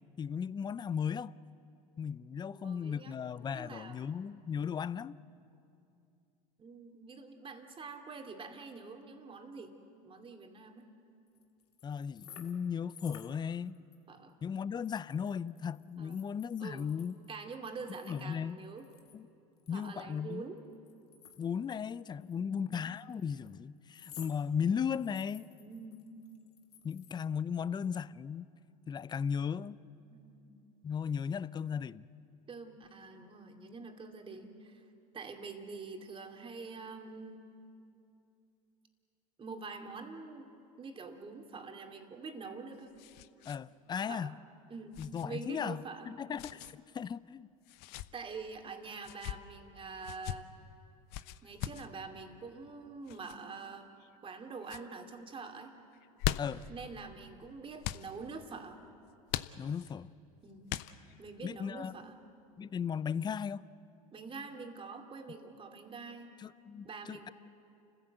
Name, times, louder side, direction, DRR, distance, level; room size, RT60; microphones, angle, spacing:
voice 1, 0.2-1.3 2.0-5.2 11.8-13.7 14.4-17.1 18.1-18.6 19.1-19.3 19.7-20.4 21.4-25.5 26.8-28.5 28.9-29.8 30.8-32.1 43.4-44.3 45.0-47.5 56.4-56.6 59.6-60.1 61.4-61.9 62.6-63.7 66.4-67.3, left 7 dB, 20° left, 0.5 m, -36 dB
voice 2, 2.5-3.2 3.5-4.2 6.6-9.8 10.0-10.9 14.1-14.3 16.0-16.2 16.6-16.9 17.3-18.9 19.7-20.6 22.4-22.8 25.6-26.0 30.1-30.5 32.5-34.8 35.1-37.4 39.4-40.5 40.8-42.9 44.1-44.4 44.7-46.2 48.1-50.5 51.4-53.9 54.2-55.7 56.7-58.8 60.4-60.7 61.2-62.2 64.1-66.3 66.8-67.3, right 4 dB, 25° right, 2.8 m, -46 dB
sound 1, 11.3-12.7 12.9-14.0 14.3-14.4 14.8-17.3 17.9-19.2 19.6-21.9 22.2-22.4 23.1-23.5 23.9-24.4 24.8-27.3, left 8 dB, 85° left, 1.9 m, -55 dB
sound 2, 42.3-43.6 43.9-44.0 44.9-45.2 46.4-46.7 47.6-48.1 49.0-49.4 50.0-50.4 51.1-51.9 53.1-53.4 54.0-54.4 54.6-54.9 55.9-56.7 57.8-58.1 59.3-59.9 60.7-61.2, left 15 dB, 55° left, 0.8 m, -39 dB
29.5 x 15.5 x 7.9 m
hypercardioid pair, 85°, 19 cm